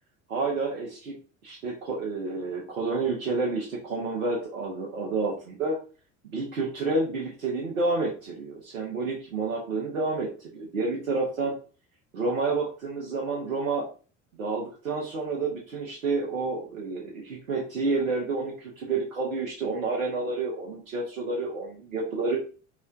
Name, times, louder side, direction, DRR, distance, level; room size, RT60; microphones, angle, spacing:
voice 1, 0.3-1.2 1.4-5.8 6.2-11.5 12.1-13.9 14.4-22.4, right 3 dB, 85° right, -2 dB, 0.8 m, -29 dB
3.2 x 2.9 x 2.5 m, 0.37 s
figure-of-eight pair, 60°, 40 cm